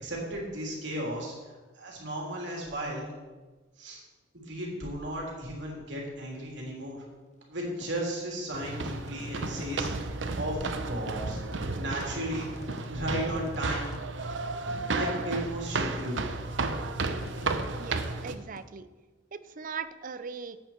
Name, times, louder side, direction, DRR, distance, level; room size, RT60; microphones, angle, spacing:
voice 1, 0.0-1.3 1.7-3.1 3.8-4.0 4.3-7.0 7.5-11.4 11.8-12.5 12.9-13.9 14.7-16.3, right 1 dB, 70° right, -2 dB, 3.2 m, -35 dB
sound 1, 6.4-6.9 7.3-9.9 10.4-10.5 11.0-11.1 11.4-12.3 12.6-12.9 13.2-14.5 15.0-15.4 15.6-16.1 16.6-18.6, left 2 dB, 40° left, 0.8 m, -48 dB
sound 2, 8.5-18.3, right 3 dB, 85° right, 0.8 m, -33 dB
voice 2, 17.8-18.9 19.3-20.6, right 5 dB, 45° right, 12 dB, 0.6 m, -39 dB
13.0 x 8.7 x 4.5 m, 1.3 s
head